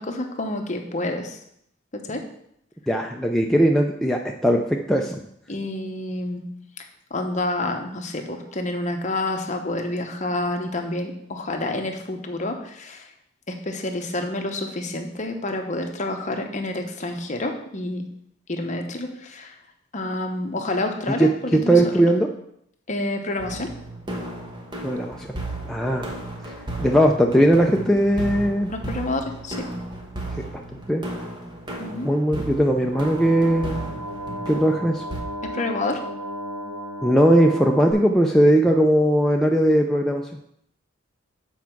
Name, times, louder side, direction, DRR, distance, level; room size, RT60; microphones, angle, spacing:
voice 1, 0.0-1.4 1.9-2.2 5.5-6.4 6.8-13.1 13.5-18.0 18.5-19.6 19.9-22.0 22.9-23.7 28.7-29.7 31.8-32.1 35.4-36.0, left 2 dB, 35° left, 4 dB, 0.9 m, -28 dB
voice 2, 2.9-4.6 4.9-5.2 21.2-21.3 21.7-22.3 24.8-25.4 25.6-26.1 26.8-28.7 30.9-31.0 32.0-33.9 34.5-35.0 37.0-40.2, right 1 dB, ahead, 0 dB, 0.4 m, -19 dB
sound 1, 23.4-35.2, right 2 dB, 20° right, 1.1 m, -34 dB
sound 2, 32.9-37.9, equal, 70° right, 1.6 m, -34 dB
7.3 x 4.6 x 5.9 m, 0.73 s
head